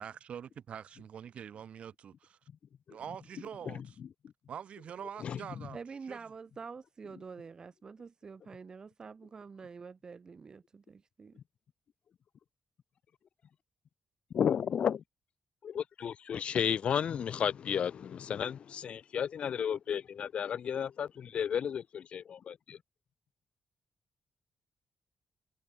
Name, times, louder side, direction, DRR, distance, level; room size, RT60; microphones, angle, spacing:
voice 1, 0.0-2.4 2.9-4.0 4.5-5.8 6.0-6.2, right 8 dB, 60° right, 4.3 m, -44 dB
voice 2, 5.2-5.7 14.3-15.0 15.6-22.8, left 8 dB, 55° left, 1.4 m, -33 dB
voice 3, 5.7-11.4, right 5 dB, 35° right, 2.8 m, -47 dB
wide cardioid pair, 155°, 2 cm